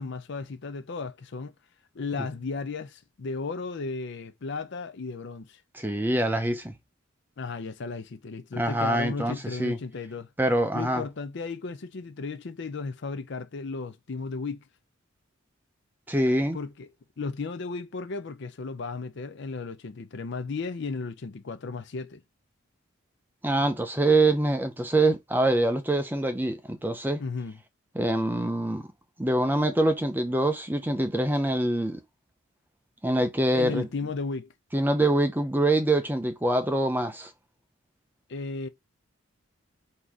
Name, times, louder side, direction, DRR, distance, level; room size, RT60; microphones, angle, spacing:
voice 1, 0.0-1.5 1.9-5.6 7.4-10.3 10.7-14.6 16.5-16.9 17.2-22.2 27.2-27.6 33.5-34.5 38.3-38.7, left 4 dB, 55° left, 0.5 m, -34 dB
voice 2, 5.7-6.7 8.5-9.8 10.4-11.0 16.1-16.6 23.4-27.2 27.9-28.9 29.2-32.0 33.0-33.9 34.7-37.3, right 1 dB, 10° right, 0.6 m, -25 dB
4.0 x 2.8 x 4.7 m
head